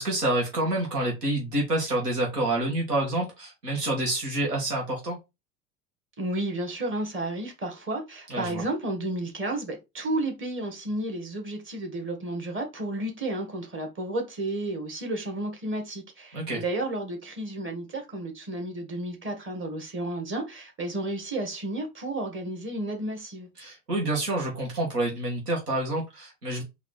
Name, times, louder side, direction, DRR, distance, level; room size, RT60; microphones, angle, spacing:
voice 1, 0.0-5.2 8.3-8.6 16.3-16.6 23.6-26.6, right 1 dB, 80° right, 1.6 m, -28 dB
voice 2, 6.2-23.5, right 1 dB, 25° right, 1.8 m, -32 dB
4.1 x 2.9 x 4.3 m
figure-of-eight pair, 70°, 46 cm